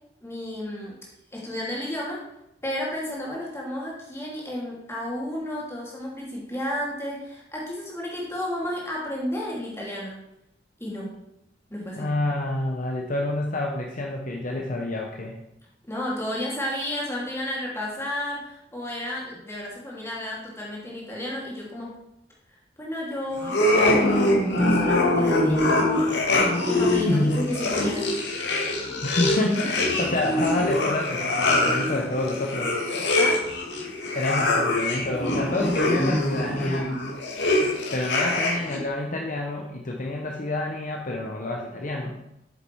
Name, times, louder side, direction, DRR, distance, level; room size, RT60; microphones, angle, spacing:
voice 1, 0.2-1.0 1.3-2.2 2.6-10.2 10.8-11.1 11.7-12.1 15.9-22.0 22.8-23.6 23.9-26.2 26.7-28.1 33.2-33.5, left 1 dB, 15° left, -4 dB, 2.8 m, -32 dB
voice 2, 12.0-15.3 27.1-27.4 29.0-32.7 34.1-36.9 37.9-42.1, left 2 dB, 45° left, 0 dB, 1.0 m, -28 dB
sound 1, 23.4-38.8, left 1 dB, 70° left, 2.0 m, -24 dB
8.5 x 6.9 x 4.7 m, 0.82 s
head